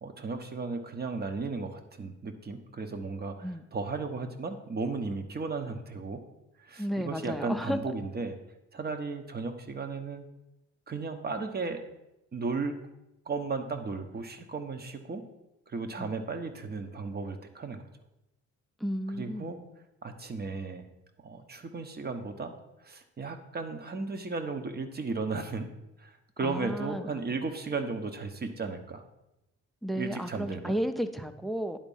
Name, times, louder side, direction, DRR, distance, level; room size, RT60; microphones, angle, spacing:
voice 1, 0.0-6.2 6.6-8.4 8.7-10.3 10.9-11.8 12.3-12.7 13.3-15.2 15.7-17.8 19.1-19.6 20.0-20.8 21.2-22.5 22.8-25.7 26.0-29.0 29.9-30.7, right 4 dB, 30° right, 7 dB, 1.0 m, -35 dB
voice 2, 6.8-7.9 16.0-16.1 18.8-19.6 26.4-27.2 29.8-31.8, equal, ahead, 9 dB, 0.6 m, -33 dB
10.5 x 4.0 x 5.5 m, 0.91 s
cardioid pair, 90°, 30 cm